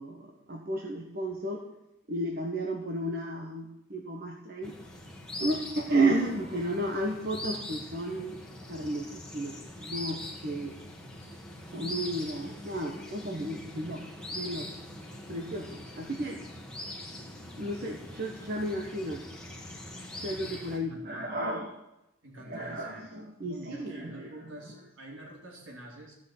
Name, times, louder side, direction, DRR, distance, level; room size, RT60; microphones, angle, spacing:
voice 1, 0.0-1.6 2.1-4.7 5.4-8.4 8.7-10.7 11.7-14.0 14.3-14.7 15.3-16.4 17.6-19.2 20.2-21.7 22.5-24.3, right 1 dB, 45° right, 0 dB, 1.3 m, -33 dB
sound 1, 4.6-20.8, left 1 dB, 5° left, 1.6 m, -42 dB
voice 2, 20.8-21.4 22.2-23.0 23.4-26.1, right 1 dB, 70° right, -1 dB, 3.7 m, -47 dB
14.5 x 6.3 x 7.2 m, 0.89 s
head